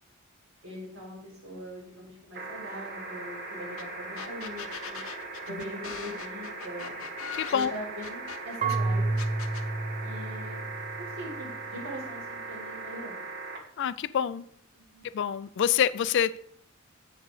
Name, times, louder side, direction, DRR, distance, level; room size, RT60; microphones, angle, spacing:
voice 1, 0.6-5.0 5.4-7.0 7.5-9.1 10.0-10.6 11.0-13.2 14.9-15.0, equal, 65° right, -2 dB, 3.9 m, -41 dB
sound 1, 2.3-13.6 15.0-15.1, right 3 dB, 50° right, 1.4 m, -39 dB
sound 2, 3.8-3.9 4.2-8.8 9.2-9.7, left 8 dB, 75° left, 0.7 m, -41 dB
voice 2, 7.3-7.7 13.8-14.5 15.1-16.4, left 8 dB, 55° left, 17 dB, 0.4 m, -26 dB
Marimba xylophone / Wood, 8.6-11.5, right 3 dB, 35° right, 0.5 m, -30 dB
8.0 x 6.6 x 4.8 m, 0.62 s
head